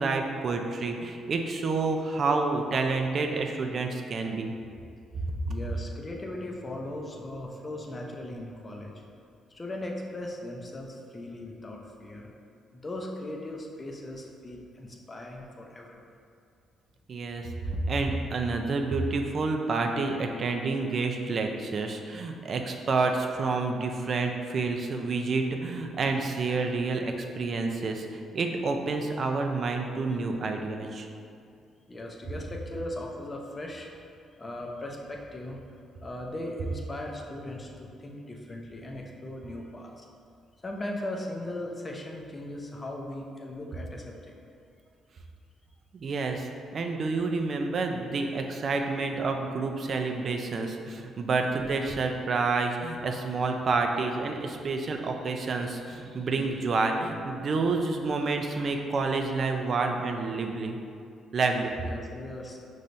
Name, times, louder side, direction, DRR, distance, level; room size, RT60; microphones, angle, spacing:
voice 1, 0.0-4.5 17.1-17.5 17.9-31.1 45.9-46.5 46.7-60.8 61.3-61.7, right 3 dB, 50° right, 3 dB, 0.4 m, -29 dB
voice 2, 5.5-8.9 9.5-12.3 12.7-16.0 31.9-34.1 34.4-35.6 36.0-40.1 40.6-44.3 61.8-62.6, left 1 dB, 25° left, 0 dB, 0.6 m, -38 dB
5.4 x 3.2 x 2.6 m, 2.4 s
cardioid pair, 90°, 0 cm